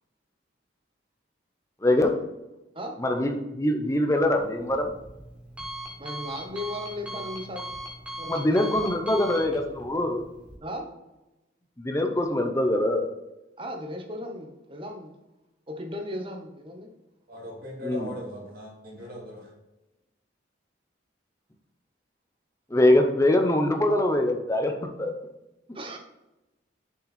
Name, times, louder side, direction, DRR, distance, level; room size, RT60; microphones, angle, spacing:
voice 1, 1.8-2.1 3.0-4.9 8.3-10.2 11.8-13.1 17.8-18.1 22.7-24.7 25.0-25.1, left 1 dB, 15° left, 5 dB, 0.7 m, -23 dB
Alarm, 4.2-10.6, equal, 5° right, 1.5 m, -40 dB
voice 2, 6.0-7.6 8.2-8.9 10.6-10.9 13.6-15.2 15.7-16.9 25.7-26.0, equal, 25° right, 4 dB, 1.0 m, -36 dB
voice 3, 17.3-19.5, left 1 dB, 50° right, -3 dB, 2.5 m, -39 dB
6.8 x 5.5 x 4.2 m, 1.0 s
head